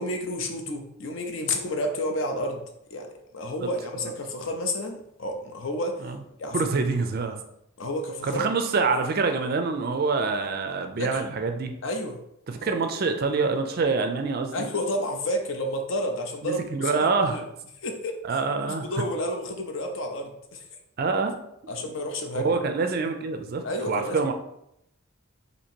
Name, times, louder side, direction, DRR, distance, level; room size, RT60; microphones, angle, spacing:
voice 1, 0.0-3.1 3.3-6.1 6.4-6.6 7.8-8.4 11.0-11.2 11.8-12.2 14.5-17.4 17.8-20.6 21.7-22.6 23.6-24.2, left 1 dB, 60° left, 4 dB, 0.5 m, -31 dB
voice 2, 6.5-7.4 8.2-11.7 12.5-14.7 16.4-17.4 18.2-18.9 21.0-21.3 21.6-21.7 22.3-24.3, right 4 dB, 45° right, 6 dB, 0.4 m, -26 dB
2.9 x 2.8 x 4.3 m, 0.79 s
head